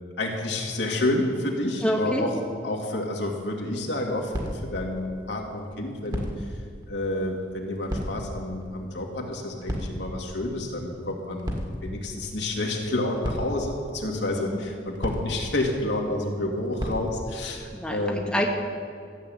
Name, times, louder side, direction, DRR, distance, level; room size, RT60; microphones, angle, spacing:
voice 1, 0.2-2.4 2.6-6.6 6.9-11.5 11.8-18.4, left 1 dB, 75° left, 0 dB, 2.2 m, -29 dB
voice 2, 1.8-2.2 14.3-14.6 17.7-18.5, equal, 5° left, 0 dB, 1.3 m, -27 dB
sound 1, 3.1-17.6, equal, 25° right, 1.9 m, -37 dB
14.0 x 7.8 x 8.9 m, 2.4 s
head